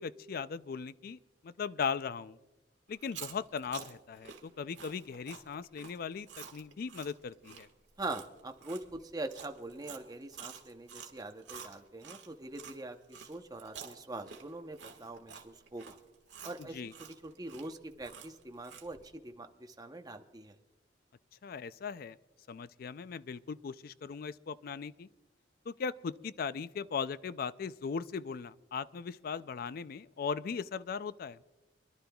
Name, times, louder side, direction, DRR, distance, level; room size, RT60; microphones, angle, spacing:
voice 1, 0.0-2.4 2.9-7.7 16.7-16.9 21.4-22.2 22.5-25.1 25.7-31.4, left 6 dB, 55° left, 16 dB, 0.4 m, -38 dB
Chewing mastication, 2.9-12.8 13.1-19.1, right 7 dB, 80° right, 1.6 m, -49 dB
voice 2, 8.0-16.0 16.4-20.6, right 2 dB, 20° right, 5 dB, 0.8 m, -43 dB
26.0 x 11.5 x 2.3 m, 1.1 s
head